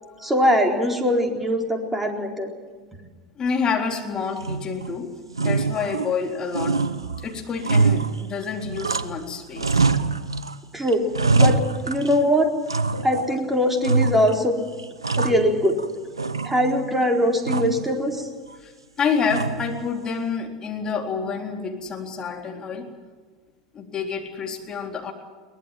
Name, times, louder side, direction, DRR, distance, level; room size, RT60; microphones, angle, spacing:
voice 1, 0.2-2.5 10.7-11.0 11.3-12.5 13.0-14.6 15.2-15.8 16.4-18.2, equal, 10° right, 2 dB, 4.1 m, -21 dB
voice 2, 3.4-5.1 5.4-6.8 7.2-9.9 18.6-18.7 19.0-22.9 23.7-25.1, left 5 dB, 30° left, 2 dB, 3.9 m, -28 dB
sound 1, 4.4-5.0 5.3-6.3 6.5-9.3 9.6-10.6 10.9-12.3 12.7-13.4 13.8-14.5 14.8-15.9 16.2-16.9 17.4-17.9 19.3-19.8, right 3 dB, 85° right, 0.9 m, -24 dB
22.5 x 20.0 x 7.6 m, 1.4 s
figure-of-eight pair, 80°, 3 cm